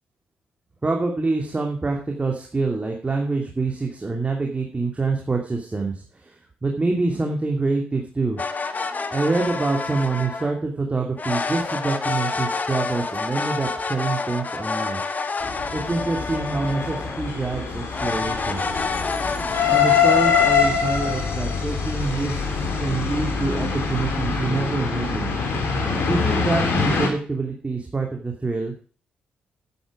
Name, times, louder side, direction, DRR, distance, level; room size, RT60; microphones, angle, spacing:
voice 1, 0.8-8.4 9.1-15.0 15.7-18.6 19.6-25.3 26.0-28.7, right 3 dB, 30° right, 1 dB, 2.5 m, -26 dB
sound 1, 8.4-10.6 11.2-17.4 17.9-20.5, left 4 dB, 35° left, 1.5 m, -28 dB
sound 2, 15.4-27.1, left 6 dB, 60° left, 3.4 m, -24 dB
11.0 x 10.0 x 5.0 m, 0.40 s
hypercardioid pair, 40°, 5 cm